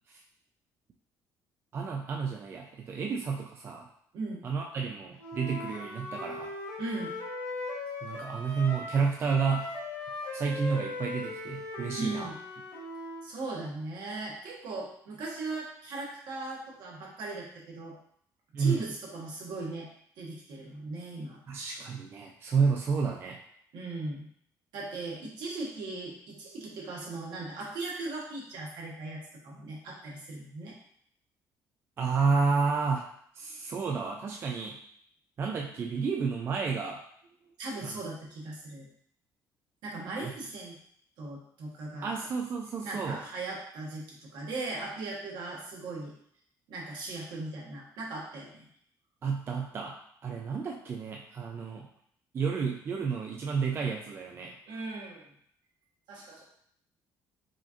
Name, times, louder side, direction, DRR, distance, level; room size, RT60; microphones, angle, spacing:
voice 1, 1.7-3.9 4.4-6.5 8.0-9.7 10.3-12.3 18.5-18.9 21.5-23.4 32.0-33.0 33.4-34.8 35.4-37.0 37.8-38.1 40.2-40.3 42.0-43.2 49.2-50.0 50.2-51.9 52.3-54.5, right 5 dB, 35° right, 0 dB, 0.3 m, -30 dB
Wind instrument woodwind instrument, 5.2-9.0 9.2-13.3, left 2 dB, 80° left, 1.3 m, -39 dB
voice 2, 6.8-7.1 12.0-12.4 13.2-17.9 18.6-19.9 20.2-21.4 23.7-24.3 24.7-30.7 37.6-38.9 39.8-40.8 41.2-42.2 42.8-46.1 46.7-48.7 54.7-55.3 56.1-56.4, right 2 dB, 75° right, -3 dB, 1.2 m, -38 dB
4.8 x 2.5 x 2.9 m, 0.65 s
cardioid pair, 160°, 7 cm